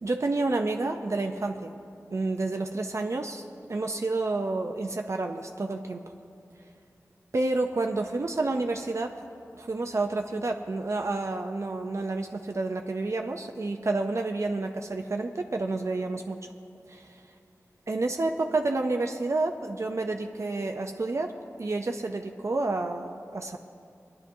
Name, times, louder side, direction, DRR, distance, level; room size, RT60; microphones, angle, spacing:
voice 1, 0.0-1.7 2.1-3.4 3.7-6.0 7.3-9.2 9.6-16.4 16.9-17.2 17.9-21.3 21.6-23.6, right 2 dB, 60° right, 3 dB, 0.6 m, -29 dB
23.0 x 10.5 x 2.7 m, 2.5 s
wide cardioid pair, 65°, 6 cm